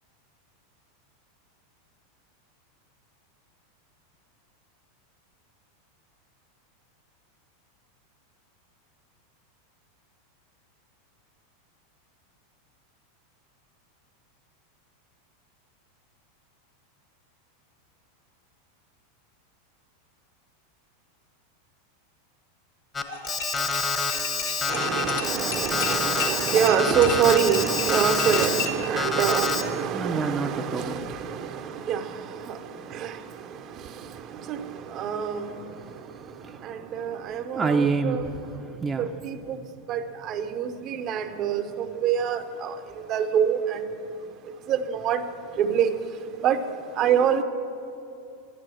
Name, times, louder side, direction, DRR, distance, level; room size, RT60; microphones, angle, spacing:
Alarm, 22.9-28.7 29.0-29.6, left 4 dB, 25° left, 1.3 m, -27 dB
sound 1, 23.1-28.9, left 4 dB, 80° left, 2.2 m, -33 dB
voice 1, 24.7-31.5 31.9-32.0 32.9-33.1 34.5-34.6 34.9-35.4 36.7-38.3 39.0-39.6 39.9-41.6 42.0-42.7 43.1-43.8 44.7-45.2 45.6-45.9 46.4-46.6 47.0-47.4, right 8 dB, 40° right, 8 dB, 0.8 m, -25 dB
voice 2, 29.9-34.7 34.9-39.2, right 4 dB, 20° right, 3 dB, 0.7 m, -32 dB
11.5 x 11.5 x 6.4 m, 2.6 s
hypercardioid pair, 100°, 0 cm